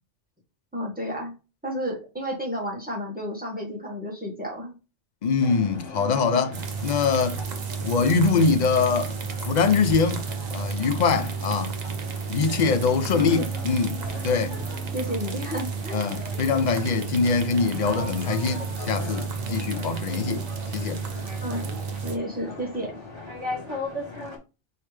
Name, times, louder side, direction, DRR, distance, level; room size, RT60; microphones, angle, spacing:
voice 1, 0.7-1.3 1.6-4.7 13.1-13.4 14.9-16.1 21.4-21.7 22.0-23.0, equal, 10° right, 1.4 m, -31 dB
voice 2, 5.2-7.4 7.8-9.1 9.4-10.2 10.5-11.8 12.3-14.0 14.2-14.6 15.9-20.4 20.7-21.0, left 5 dB, 50° left, 0.6 m, -23 dB
sound 1, 5.4-24.4, left 2 dB, 25° right, 1.1 m, -39 dB
sound 2, 6.5-22.2, right 6 dB, 45° right, 0.6 m, -32 dB
4.7 x 3.4 x 3.2 m
omnidirectional pair, 1.2 m